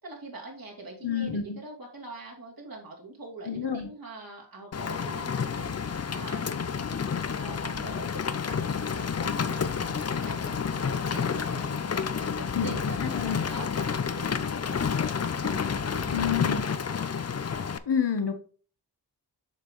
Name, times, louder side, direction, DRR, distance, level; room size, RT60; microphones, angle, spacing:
voice 1, 0.0-7.0 7.4-15.0 15.4-16.4, right 2 dB, 50° right, -2 dB, 2.8 m, -44 dB
voice 2, 1.0-1.6 3.5-3.9 12.6-12.8 13.1-13.4 16.1-16.6 17.9-18.3, left 7 dB, 65° left, 8 dB, 1.1 m, -28 dB
Rain, 4.7-17.8, left 6 dB, 35° left, 0.5 m, -30 dB
7.3 x 5.4 x 3.1 m, 0.42 s
wide cardioid pair, 65°, 43 cm